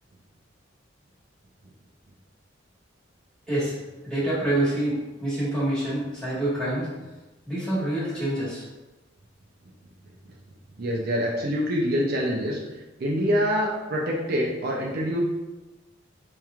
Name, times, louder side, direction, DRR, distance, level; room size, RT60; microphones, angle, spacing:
voice 1, 4.0-6.9 7.5-8.6, right 1 dB, 5° left, -11 dB, 1.4 m, -26 dB
voice 2, 10.8-12.6 13.0-15.2, equal, 50° right, -3 dB, 0.5 m, -25 dB
4.4 x 3.0 x 2.4 m, 1.1 s
head